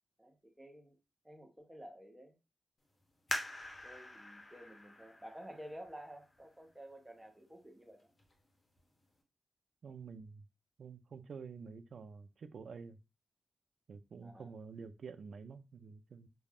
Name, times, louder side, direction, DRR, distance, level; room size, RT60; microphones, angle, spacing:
voice 1, 0.2-1.0 1.2-2.4 3.8-8.1 14.2-14.5, equal, 10° right, 0.6 m, -52 dB
sound 1, 3.3-6.7 7.3-7.4 8.0-8.4 8.8-8.9, left 1 dB, 40° left, 0.7 m, -44 dB
voice 2, 9.8-10.4 10.8-13.0 13.9-16.3, right 5 dB, 70° right, 0.3 m, -49 dB
2.4 x 2.1 x 3.3 m
wide cardioid pair, 125°, 0 cm